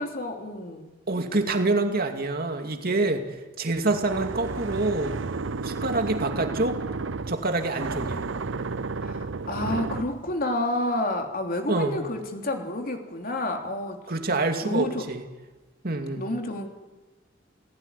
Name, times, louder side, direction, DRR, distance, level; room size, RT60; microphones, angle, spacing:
voice 1, 0.0-0.9 9.0-14.0 14.6-15.1 16.2-16.7, left 1 dB, 50° left, 3 dB, 3.3 m, -29 dB
voice 2, 1.1-5.2 5.6-6.8 7.3-8.3 11.7-12.0 14.1-15.2 15.8-16.3, right 2 dB, 55° right, 5 dB, 2.5 m, -26 dB
sound 1, 3.9-10.2, right 4 dB, 75° right, 0.8 m, -32 dB
28.5 x 17.5 x 9.8 m, 1.1 s
head